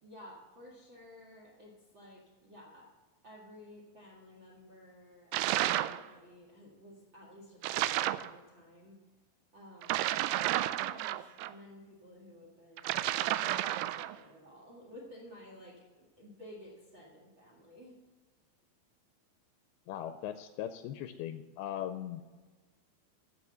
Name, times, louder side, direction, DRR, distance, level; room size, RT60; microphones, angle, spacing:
voice 1, 0.0-2.9 3.2-9.0 9.5-10.1 10.5-13.0 13.3-18.0, left 1 dB, 40° right, -2 dB, 2.0 m, -54 dB
sound 1, 5.3-6.0 7.6-8.3 9.8-11.5 12.8-14.2, right 14 dB, 85° right, 2.6 m, -31 dB
voice 2, 19.9-22.2, left 11 dB, 80° left, 9 dB, 2.4 m, -39 dB
15.5 x 5.6 x 6.9 m, 1.3 s
omnidirectional pair, 4.6 m